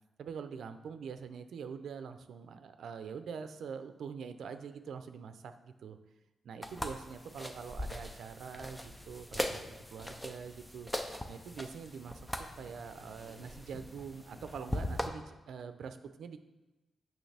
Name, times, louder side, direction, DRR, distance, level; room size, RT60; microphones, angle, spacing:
voice 1, 0.2-6.0 6.4-10.9 11.3-12.3 12.6-16.4, right 6 dB, 75° right, 9 dB, 0.5 m, -44 dB
sound 1, 6.6-15.1, left 1 dB, 5° left, 0.5 m, -40 dB
8.8 x 6.3 x 3.4 m, 1.1 s
wide cardioid pair, 175°, 0 cm